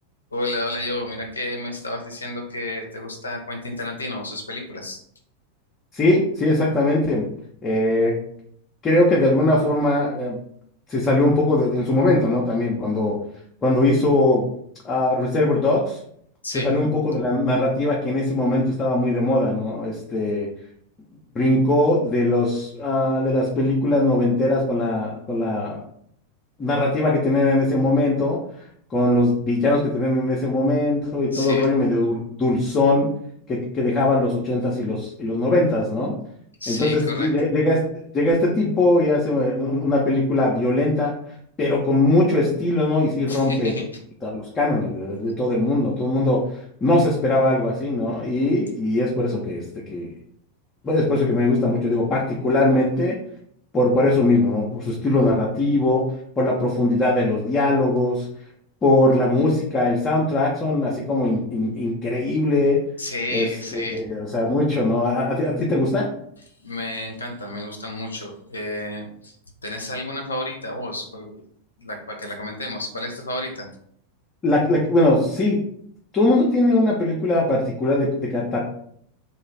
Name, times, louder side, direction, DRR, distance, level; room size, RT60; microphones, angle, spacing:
voice 1, 0.3-5.0 16.4-16.7 31.3-31.7 36.6-37.3 43.3-43.8 63.0-64.0 66.6-69.4 69.6-71.3 71.8-73.7, left 1 dB, 75° left, 2 dB, 0.5 m, -31 dB
voice 2, 5.9-7.2 7.6-8.2 8.8-10.4 10.9-13.1 13.6-14.4 14.8-16.0 16.5-20.5 21.3-25.8 26.6-28.4 28.9-33.1 33.5-36.1 36.7-37.8 38.1-41.1 41.6-43.7 44.2-46.4 46.8-49.6 49.9-50.1 50.8-53.2 53.7-56.0 56.4-58.3 58.8-62.8 63.3-66.1 74.4-75.6 76.1-78.6, left 2 dB, 20° left, -4 dB, 0.6 m, -20 dB
2.4 x 2.3 x 3.2 m, 0.67 s
figure-of-eight pair, 90°, 0 cm